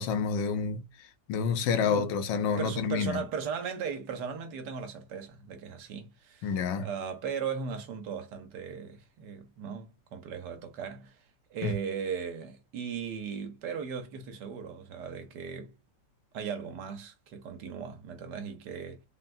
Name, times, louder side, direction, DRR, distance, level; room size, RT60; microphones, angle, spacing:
voice 1, 0.0-3.2 6.4-6.9 11.6-11.7, left 6 dB, 90° left, 1.3 m, -29 dB
voice 2, 1.8-2.1 2.6-11.2 11.5-15.7 16.3-19.0, right 6 dB, 75° right, 1.2 m, -37 dB
3.6 x 2.2 x 2.5 m
omnidirectional pair, 1.9 m